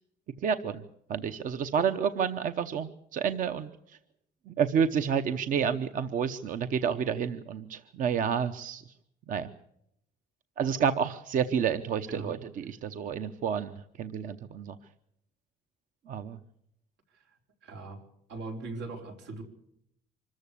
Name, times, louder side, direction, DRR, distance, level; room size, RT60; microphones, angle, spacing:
voice 1, 0.4-0.8 1.1-4.0 4.5-8.8 9.3-9.5 10.6-14.8 16.1-16.4, right 7 dB, 50° right, 10 dB, 0.9 m, -30 dB
voice 2, 12.1-12.4 17.6-18.0 18.3-19.4, right 3 dB, 80° right, 4 dB, 4.6 m, -40 dB
25.5 x 14.0 x 8.5 m, 0.76 s
cardioid pair, 180°, 18 cm